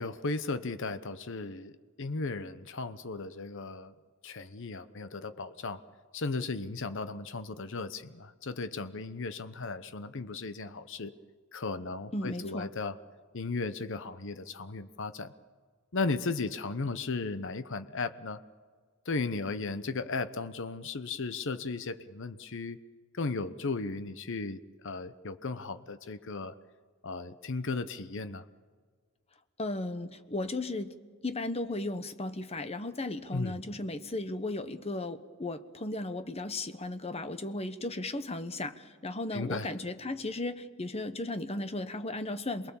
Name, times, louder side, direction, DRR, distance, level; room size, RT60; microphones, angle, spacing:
voice 1, 0.0-1.7 2.0-3.9 4.2-5.8 6.1-11.1 11.5-13.0 13.3-15.3 15.9-18.4 19.0-22.8 23.1-26.5 27.0-28.4 33.3-33.6 39.3-39.7, left 3 dB, 60° left, 11 dB, 0.9 m, -35 dB
voice 2, 12.1-12.7 29.6-31.0 31.2-42.7, left 2 dB, 30° left, 10 dB, 1.1 m, -35 dB
28.0 x 21.5 x 7.1 m, 1.5 s
head